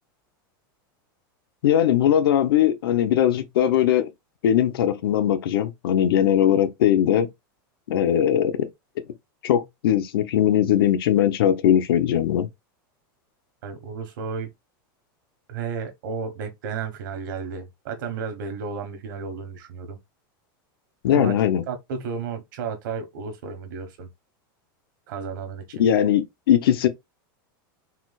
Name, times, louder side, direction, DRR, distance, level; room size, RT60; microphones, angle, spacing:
voice 1, 1.6-4.1 4.4-7.3 7.9-8.7 9.4-12.5 21.0-21.6 25.7-26.9, left 10 dB, 90° left, 0.8 m, -20 dB
voice 2, 13.6-14.5 15.5-20.0 21.1-21.4 21.7-24.1 25.1-25.8, right 5 dB, 60° right, 1.3 m, -33 dB
4.3 x 2.3 x 4.1 m
supercardioid pair, 180°, 12 cm